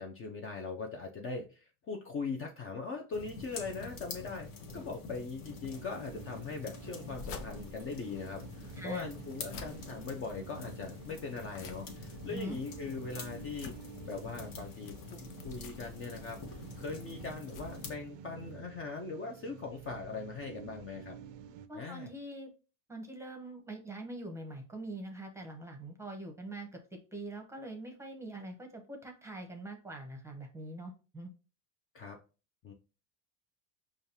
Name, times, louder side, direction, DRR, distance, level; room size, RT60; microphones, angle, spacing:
voice 1, 0.0-13.8 14.0-21.2 21.7-22.1 31.9-32.2 32.6-32.7, left 4 dB, 30° left, 2 dB, 0.5 m, -41 dB
sound 1, 3.1-18.0, left 4 dB, 45° left, 1.1 m, -47 dB
sound 2, 5.7-21.7, right 8 dB, 45° right, 0.4 m, -51 dB
sound 3, 6.8-18.6, left 4 dB, 80° left, 0.8 m, -51 dB
voice 2, 8.7-9.1 12.3-12.6 21.7-22.5 22.9-31.3, right 1 dB, 5° right, 3 dB, 0.8 m, -43 dB
5.1 x 2.4 x 2.7 m, 0.33 s
supercardioid pair, 105°, 45 cm